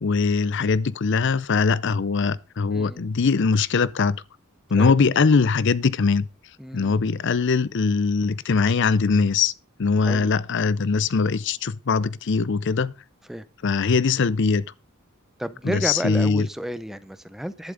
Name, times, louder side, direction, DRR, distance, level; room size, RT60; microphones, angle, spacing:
voice 1, 0.0-4.2 4.7-6.2 6.7-9.5 9.8-12.9 13.6-14.7 15.6-16.5, left 4 dB, 55° left, 0.5 m, -21 dB
voice 2, 2.7-3.0 4.8-5.0 6.6-7.0 10.0-10.3 13.3-13.5 15.4-17.7, equal, ahead, 0.6 m, -31 dB
11.5 x 11.0 x 3.9 m
head